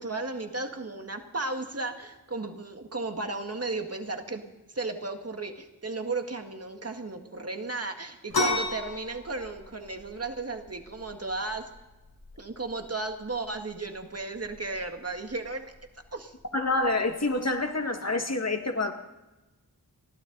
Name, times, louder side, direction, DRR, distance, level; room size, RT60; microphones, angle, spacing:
voice 1, 0.0-4.4 4.7-11.7 12.4-15.7 16.1-16.3, right 3 dB, 40° right, 5 dB, 1.9 m, -34 dB
sound 1, 8.3-17.7, left 2 dB, 90° left, 5.7 m, -37 dB
voice 2, 16.5-18.9, left 2 dB, 45° left, 4 dB, 2.0 m, -27 dB
30.0 x 12.0 x 4.0 m, 1.1 s
wide cardioid pair, 60°, 37 cm